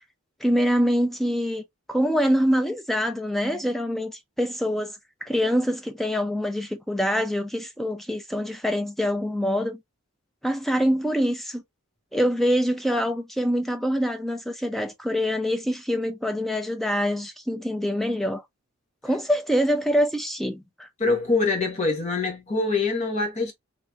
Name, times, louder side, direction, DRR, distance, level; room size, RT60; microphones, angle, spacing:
voice 1, 0.4-1.6 1.9-4.9 5.2-9.8 10.4-11.6 12.1-18.4 19.0-20.9, equal, ahead, 0.4 m, -25 dB
voice 2, 21.0-23.5, left 3 dB, 35° left, 1.1 m, -24 dB
3.1 x 3.0 x 2.3 m
head